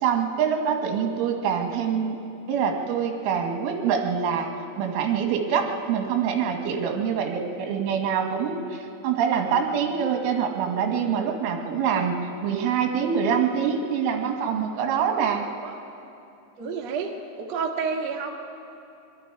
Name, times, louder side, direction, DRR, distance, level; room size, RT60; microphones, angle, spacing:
voice 1, 0.0-2.2 2.5-4.5 4.8-12.2 12.4-15.5, right 7 dB, 80° right, 3 dB, 3.9 m, -25 dB
voice 2, 16.6-18.3, right 5 dB, 55° right, 0 dB, 1.9 m, -30 dB
24.0 x 23.5 x 4.7 m, 2.7 s
omnidirectional pair, 5.6 m